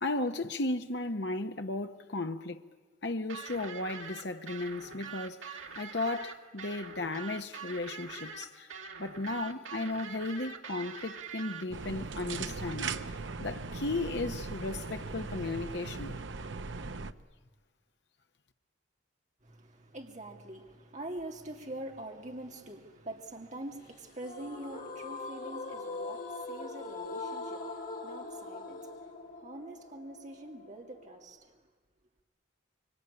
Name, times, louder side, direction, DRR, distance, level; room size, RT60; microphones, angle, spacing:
voice 1, 0.0-2.6 3.0-8.7 9.0-16.2, left 2 dB, 55° left, 1.0 m, -35 dB
sound 1, 3.3-11.6, right 5 dB, 85° right, 2.1 m, -44 dB
sound 2, 11.7-17.1, right 4 dB, 65° right, 0.9 m, -39 dB
voice 2, 19.4-31.6, right 1 dB, 35° right, 2.4 m, -45 dB
sound 3, 24.2-31.3, left 3 dB, 40° left, 3.4 m, -42 dB
25.5 x 23.5 x 9.8 m
head